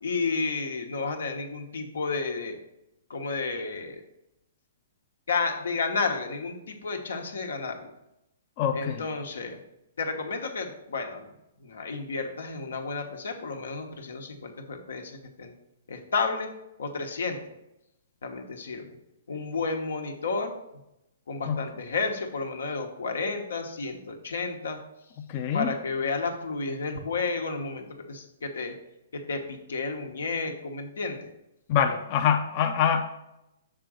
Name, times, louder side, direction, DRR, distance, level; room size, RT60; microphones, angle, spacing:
voice 1, 0.0-2.6 3.1-4.0 5.3-7.9 8.7-9.6 10.0-11.3 11.6-15.5 15.9-16.5 16.8-17.4 18.2-18.9 19.3-20.5 21.3-24.8 25.5-28.7 29.3-31.3, left 4 dB, 85° left, 4 dB, 1.1 m, -31 dB
voice 2, 8.6-9.1 21.5-21.6 25.2-25.7 31.7-33.0, left 8 dB, 35° left, 5 dB, 0.5 m, -25 dB
6.7 x 3.8 x 6.3 m, 0.89 s
hypercardioid pair, 145°, 0 cm